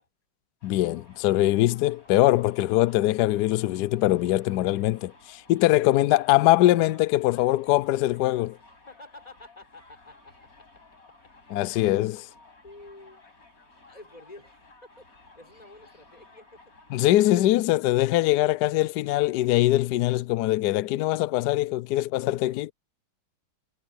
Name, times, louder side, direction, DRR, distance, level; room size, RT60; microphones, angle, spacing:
voice 1, 0.6-8.6 11.5-12.3 16.9-22.7, left 16 dB, 80° left, 0.9 m, -22 dB
Subway metro underground, 0.6-17.3, left 2 dB, 40° left, 7.2 m, -55 dB
voice 2, 8.9-10.7 12.6-13.2 13.9-14.5 15.0-15.1 15.3-16.6, left 2 dB, 15° left, 5.6 m, -49 dB
omnidirectional pair, 2.3 m